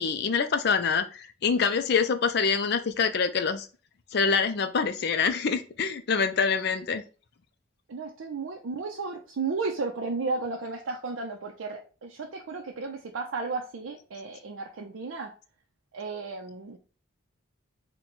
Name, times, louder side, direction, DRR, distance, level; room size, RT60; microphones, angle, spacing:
voice 1, 0.0-3.7 4.1-7.0, left 5 dB, 55° left, 0.4 m, -25 dB
voice 2, 7.9-15.3 15.9-16.8, right 4 dB, 85° right, 0.5 m, -34 dB
3.9 x 2.2 x 4.3 m
head